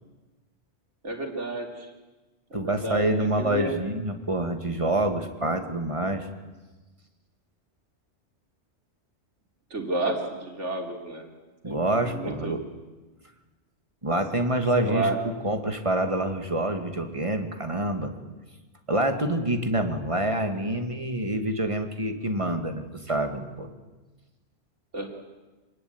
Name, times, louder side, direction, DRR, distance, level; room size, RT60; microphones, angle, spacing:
voice 1, 1.0-1.9 2.5-3.7 9.7-11.3 11.6-12.6 14.9-15.2 24.9-25.1, right 2 dB, 85° right, 2 dB, 3.9 m, -31 dB
voice 2, 2.5-6.3 11.6-12.6 14.0-18.1 18.9-23.7, right 1 dB, 25° right, 6 dB, 2.4 m, -27 dB
27.0 x 19.0 x 9.6 m, 1.2 s
omnidirectional pair, 1.2 m